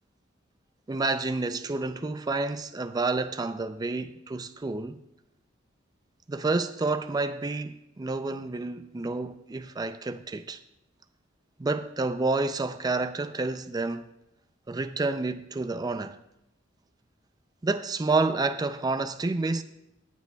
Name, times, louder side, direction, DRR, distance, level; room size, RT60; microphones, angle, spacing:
voice 1, 0.9-5.0 6.3-10.6 11.6-14.1 14.7-16.2 17.6-19.6, right 3 dB, 20° right, 0.4 m, -29 dB
23.0 x 8.2 x 2.3 m
head